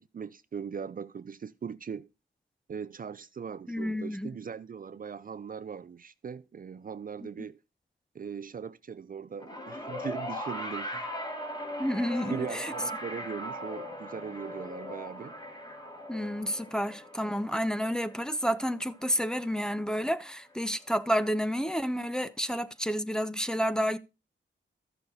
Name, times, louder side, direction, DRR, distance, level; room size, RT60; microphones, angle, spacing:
voice 1, 0.0-2.1 2.7-7.6 8.1-11.1 12.1-15.4, right 6 dB, 45° right, 0.5 m, -39 dB
voice 2, 3.7-4.3 11.8-12.7 16.1-24.0, equal, 5° left, 0.7 m, -30 dB
sound 1, 9.4-19.8 20.9-21.0, left 1 dB, 20° left, 2.7 m, -39 dB
13.0 x 6.7 x 4.1 m
wide cardioid pair, 90°, 20 cm